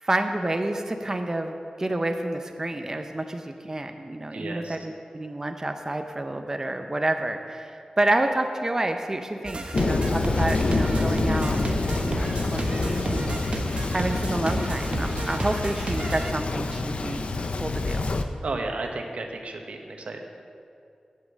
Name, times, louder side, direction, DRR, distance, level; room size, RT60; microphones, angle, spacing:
voice 1, 0.0-11.6 12.0-17.3 17.6-18.1, right 1 dB, 25° right, 5 dB, 0.6 m, -29 dB
voice 2, 4.3-4.8 18.4-20.2, right 2 dB, 75° right, 3 dB, 1.1 m, -33 dB
sound 1, 9.4-16.3, right 1 dB, 50° right, 0.9 m, -32 dB
Thunder, 9.7-18.2, left 3 dB, 60° left, 0.6 m, -27 dB
8.3 x 7.5 x 7.2 m, 2.5 s
wide cardioid pair, 105°, 2 cm